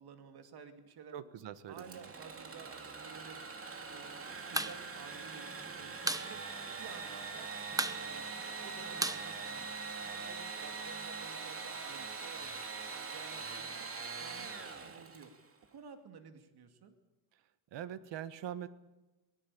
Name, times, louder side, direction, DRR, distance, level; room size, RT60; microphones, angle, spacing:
voice 1, 0.0-1.2 1.7-3.4 3.9-6.4 6.8-7.5 7.9-8.3 8.6-9.7 10.1-12.5 12.9-13.9 14.2-15.3 15.7-16.9, right 6 dB, 60° right, 7 dB, 2.6 m, -53 dB
voice 2, 1.1-2.1 17.7-18.7, right 10 dB, 85° right, 13 dB, 1.5 m, -43 dB
Engine / Sawing, 1.7-15.5, right 4 dB, 30° right, 2.7 m, -43 dB
sound 1, 4.4-4.8 5.0-5.1 5.4-6.3 6.6-6.7 7.0-7.4 7.7-10.1, right 2 dB, 10° right, 0.9 m, -35 dB
23.0 x 19.5 x 8.5 m, 1.1 s
cardioid pair, 150°, 42 cm